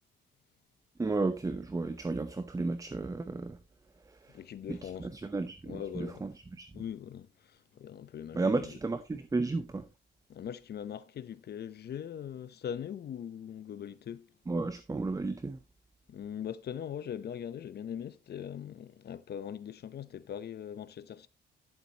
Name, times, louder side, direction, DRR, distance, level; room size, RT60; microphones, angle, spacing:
voice 1, 1.0-3.6 4.1-4.4 4.7-6.7 8.3-9.9 14.5-15.6, right 3 dB, 15° right, 0.8 m, -33 dB
voice 2, 4.3-5.1 5.7-6.3 6.7-8.8 10.3-14.3 16.1-21.3, left 9 dB, 55° left, 0.8 m, -41 dB
11.5 x 7.5 x 2.9 m
cardioid pair, 90°, 20 cm